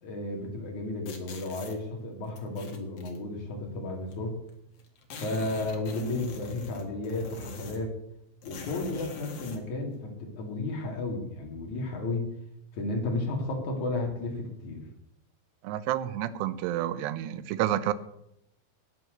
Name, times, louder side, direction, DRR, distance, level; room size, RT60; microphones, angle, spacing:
voice 1, 0.0-4.4 5.2-7.9 8.4-12.3 12.7-14.8, left 2 dB, 45° left, 1 dB, 3.8 m, -33 dB
sound 1, 1.0-1.8 2.3-3.2 4.1-4.2 4.4-4.5 4.8-7.9 8.4-9.6, left 4 dB, 60° left, 1.5 m, -43 dB
voice 2, 15.6-17.9, right 12 dB, 80° right, 14 dB, 2.7 m, -29 dB
14.5 x 9.5 x 6.6 m, 0.79 s
omnidirectional pair, 5.4 m